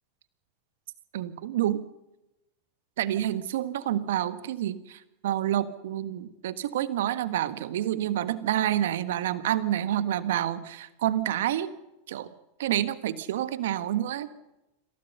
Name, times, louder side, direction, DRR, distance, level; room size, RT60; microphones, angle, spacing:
voice 1, 1.1-1.9 3.0-11.7 12.1-12.3 12.6-14.3, right 12 dB, 70° right, 12 dB, 1.4 m, -28 dB
27.0 x 17.0 x 6.8 m, 0.93 s
hypercardioid pair, 90°, 0 cm